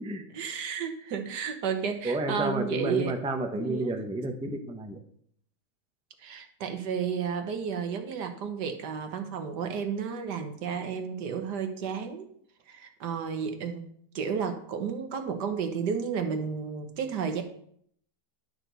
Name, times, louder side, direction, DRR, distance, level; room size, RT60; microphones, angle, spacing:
voice 1, 0.3-3.2 3.5-4.0 6.2-12.3 12.7-13.8 14.1-17.4, right 6 dB, 85° right, 6 dB, 1.7 m, -32 dB
voice 2, 2.0-5.0, right 2 dB, 5° right, 4 dB, 0.6 m, -31 dB
11.5 x 6.1 x 4.0 m, 0.66 s
omnidirectional pair, 1.7 m